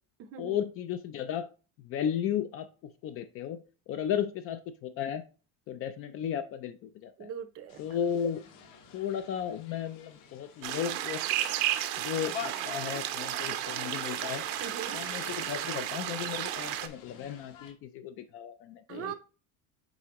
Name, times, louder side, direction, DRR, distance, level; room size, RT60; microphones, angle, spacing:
voice 1, 0.4-1.5 1.8-5.3 5.7-7.3 7.8-8.4 8.9-11.2 12.0-14.4 14.9-19.1, left 9 dB, 40° left, 11 dB, 0.4 m, -35 dB
voice 2, 7.2-7.8 14.6-15.0 18.9-19.1, right 9 dB, 35° right, 11 dB, 0.6 m, -40 dB
sound 1, 7.7-17.7, left 8 dB, 55° left, 1.2 m, -47 dB
sound 2, 10.6-16.9, right 13 dB, 75° right, 0.9 m, -33 dB
7.7 x 4.7 x 3.0 m, 0.35 s
cardioid pair, 165°, 37 cm